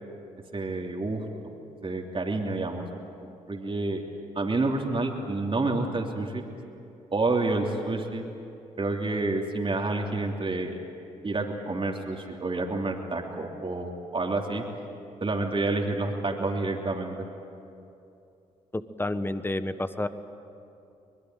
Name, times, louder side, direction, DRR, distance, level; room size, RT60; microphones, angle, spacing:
voice 1, 0.5-1.5 1.8-2.8 3.5-4.0 4.3-6.4 7.1-8.2 8.8-10.8 11.2-14.6 15.2-17.2, right 2 dB, 30° right, 1 dB, 3.1 m, -29 dB
voice 2, 18.7-20.1, left 1 dB, 10° left, 11 dB, 1.4 m, -30 dB
23.5 x 22.0 x 9.4 m, 2.7 s
hypercardioid pair, 45°, 17 cm